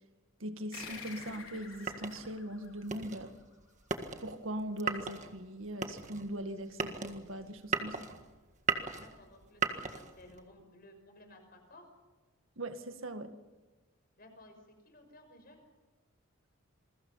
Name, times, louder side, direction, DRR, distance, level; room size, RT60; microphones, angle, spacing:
voice 1, 0.4-3.3 4.2-8.1 12.6-13.3, right 1 dB, 70° right, 8 dB, 1.9 m, -40 dB
sound 1, 0.7-3.7, left 6 dB, 75° left, 4.8 m, -49 dB
sound 2, 0.8-10.5, right 5 dB, 35° right, 1.7 m, -38 dB
voice 2, 9.0-11.9 14.2-14.6 14.8-15.6, left 1 dB, 45° left, 5 dB, 5.8 m, -56 dB
28.0 x 22.0 x 5.7 m, 1.2 s
head